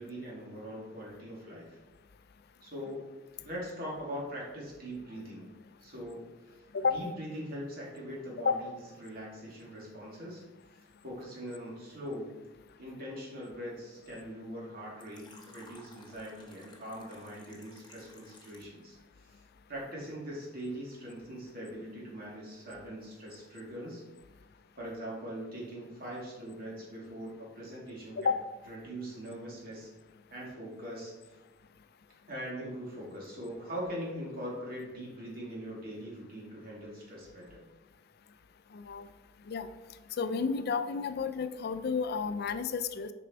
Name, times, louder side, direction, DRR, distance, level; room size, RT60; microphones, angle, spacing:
voice 1, 0.0-1.8 2.6-3.1 3.4-5.5 5.8-6.6 6.9-10.4 11.0-12.3 12.8-19.0 19.3-19.4 19.7-24.0 24.8-28.3 28.7-29.9 30.3-31.4 32.3-37.6, equal, 50° right, -5 dB, 2.5 m, -42 dB
Fill (with liquid), 15.0-18.8, left 2 dB, 25° left, 0.9 m, -56 dB
voice 2, 38.7-39.1 39.5-39.7 40.2-43.1, left 5 dB, 55° left, 11 dB, 0.4 m, -31 dB
6.7 x 5.1 x 4.5 m, 1.1 s
head